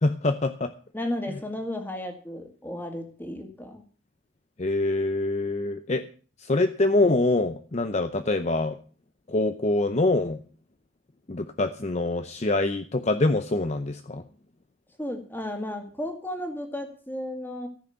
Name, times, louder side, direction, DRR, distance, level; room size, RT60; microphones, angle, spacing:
voice 1, 0.0-0.7 4.6-6.1 6.4-8.8 9.3-10.4 11.3-14.2, left 2 dB, 35° left, 9 dB, 0.6 m, -25 dB
voice 2, 0.9-3.8 15.0-17.7, left 1 dB, 10° left, 4 dB, 2.1 m, -34 dB
14.0 x 6.4 x 8.1 m, 0.42 s
head